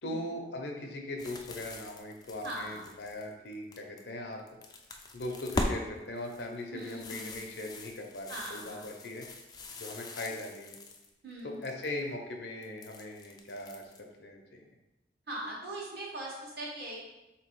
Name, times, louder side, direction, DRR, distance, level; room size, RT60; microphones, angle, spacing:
voice 1, 0.0-4.4 5.1-9.3 9.8-10.8 11.4-14.7, left 1 dB, 75° left, 2 dB, 0.7 m, -40 dB
sound 1, 1.2-4.0 4.4-5.8 6.2-11.1 11.4-12.0 12.6-14.0, left 2 dB, 20° left, 0.3 m, -40 dB
voice 2, 2.4-2.8 6.7-7.4 8.3-8.9 11.2-11.6 15.3-17.0, right 1 dB, 60° right, -4 dB, 1.3 m, -40 dB
3.5 x 2.9 x 4.5 m, 1.0 s
head